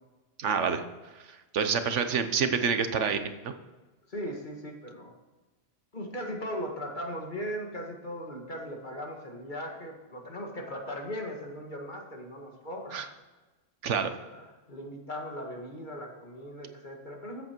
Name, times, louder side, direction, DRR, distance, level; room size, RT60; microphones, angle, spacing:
voice 1, 0.4-0.8 1.5-3.2 3.4-3.5 12.9-13.1 13.8-14.1, right 6 dB, 75° right, 9 dB, 1.3 m, -27 dB
voice 2, 4.1-5.1 5.9-13.0 14.2-17.4, equal, 40° left, 1 dB, 1.9 m, -38 dB
14.0 x 8.2 x 4.5 m, 1.2 s
omnidirectional pair, 1.3 m